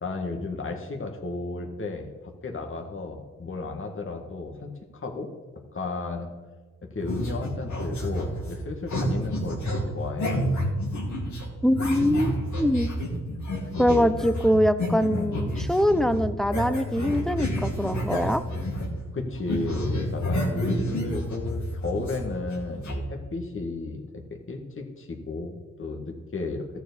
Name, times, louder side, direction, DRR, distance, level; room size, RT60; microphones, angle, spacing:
voice 1, 0.0-4.7 5.0-5.3 5.7-6.3 6.9-10.4 13.6-14.1 15.1-15.5 19.1-26.7, left 3 dB, 40° left, 3 dB, 1.6 m, -33 dB
sound 1, 7.0-19.1 19.3-23.0, equal, 65° left, 2.5 m, -30 dB
voice 2, 11.6-12.9 13.8-18.4, equal, ahead, 13 dB, 0.6 m, -23 dB
13.0 x 4.8 x 8.2 m, 1.3 s
cardioid pair, 55°, 32 cm